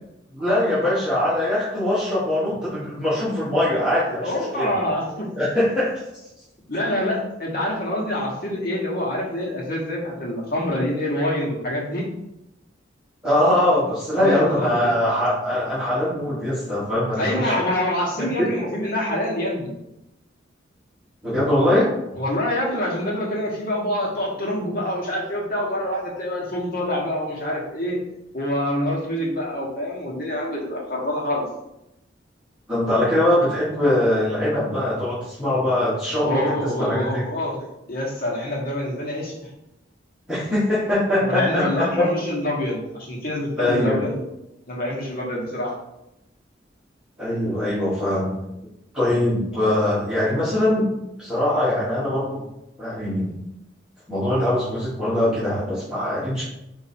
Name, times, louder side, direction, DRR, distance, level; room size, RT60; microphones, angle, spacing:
voice 1, 0.3-4.7 5.4-5.9 13.2-17.5 18.4-18.5 21.2-21.9 32.7-36.4 36.8-37.2 40.3-42.1 43.6-44.0 47.2-48.3 48.9-50.9 51.2-52.4 52.8-53.3 54.1-56.4, left 1 dB, 5° right, -12 dB, 1.3 m, -22 dB
voice 2, 4.2-5.3 6.7-12.1 14.2-14.9 17.2-19.7 22.1-28.0 28.3-31.5 36.1-39.3 41.2-44.2 44.7-45.7, left 1 dB, 50° left, -3 dB, 1.2 m, -26 dB
4.1 x 2.6 x 4.2 m, 0.87 s
head